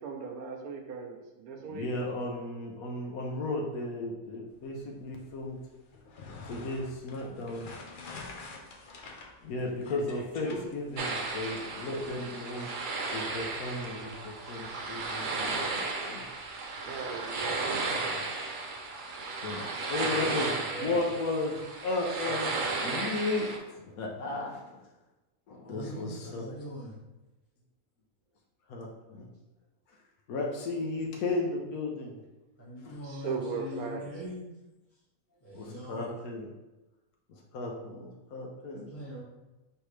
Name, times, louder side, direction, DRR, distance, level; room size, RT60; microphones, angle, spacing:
voice 1, 0.0-1.9 16.8-17.8 33.0-34.0, right 5 dB, 90° right, 3 dB, 1.2 m, -37 dB
voice 2, 1.7-5.6 6.5-7.7 9.4-12.7 13.1-16.2 17.9-18.2 19.4-20.5 20.8-22.5 22.8-24.8 25.5-26.6 28.7-29.3 30.3-32.2 32.8-32.9 35.5-36.5 37.3-38.9, left 2 dB, 80° left, 0 dB, 1.2 m, -35 dB
sound 1, 5.9-11.4, left 3 dB, 60° left, 0.5 m, -45 dB
sound 2, 11.0-23.6, right 3 dB, 60° right, 0.5 m, -34 dB
voice 3, 20.1-21.0 25.6-27.0 29.1-29.2 32.6-34.4 35.3-36.3 38.9-39.2, equal, 10° left, -8 dB, 1.4 m, -42 dB
4.7 x 3.3 x 3.1 m, 1.0 s
omnidirectional pair, 1.5 m